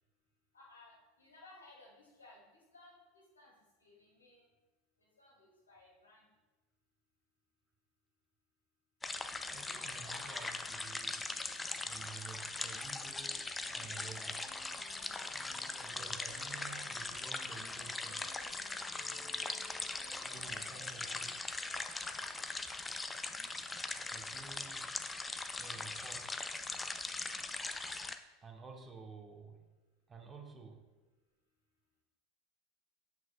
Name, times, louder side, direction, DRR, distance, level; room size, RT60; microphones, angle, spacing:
voice 1, 0.5-2.4 2.7-3.5 3.8-4.5 5.2-6.2 9.9-10.4 15.7-16.9 20.0-21.9, left 2 dB, 85° left, -3 dB, 1.7 m, -59 dB
sound 1, 9.0-28.2, left 3 dB, 15° left, 0.4 m, -41 dB
voice 2, 9.4-11.2 11.8-14.5 15.4-18.3 20.2-21.3 24.1-24.9 25.6-26.3 28.4-29.6 30.1-30.8, right 5 dB, 20° right, 3 dB, 1.0 m, -52 dB
sound 2, 13.6-21.9, left 3 dB, 65° left, 1.2 m, -61 dB
7.6 x 6.0 x 2.3 m, 1.1 s
figure-of-eight pair, 80°, 0 cm